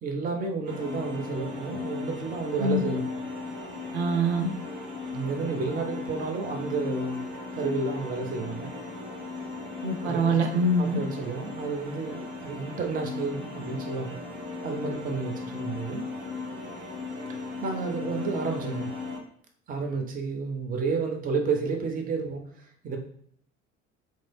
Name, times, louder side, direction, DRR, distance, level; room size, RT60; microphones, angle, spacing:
voice 1, 0.0-3.1 5.1-7.2 7.5-8.7 10.0-14.1 14.6-16.0 17.6-18.9 19.7-23.0, right 4 dB, 25° right, 3 dB, 0.6 m, -31 dB
sound 1, 0.6-19.2, left 3 dB, 55° right, 1.3 m, -37 dB
voice 2, 3.9-4.5 9.8-11.0, right 1 dB, 70° right, 4 dB, 0.5 m, -24 dB
3.1 x 2.7 x 2.2 m, 0.63 s
figure-of-eight pair, 60°, 36 cm